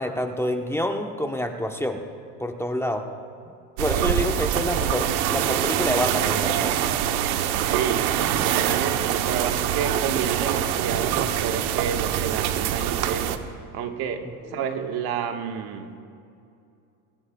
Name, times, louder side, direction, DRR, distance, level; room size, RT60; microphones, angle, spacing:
voice 1, 0.0-2.0 2.4-3.0 3.8-6.8 14.4-14.6, left 1 dB, 5° left, 4 dB, 1.0 m, -27 dB
sound 1, 3.8-13.4, right 10 dB, 80° right, 1.0 m, -24 dB
voice 2, 7.5-13.4 13.7-15.9, right 7 dB, 60° right, 5 dB, 1.5 m, -30 dB
23.5 x 18.5 x 2.3 m, 2.5 s
supercardioid pair, 90°, 43 cm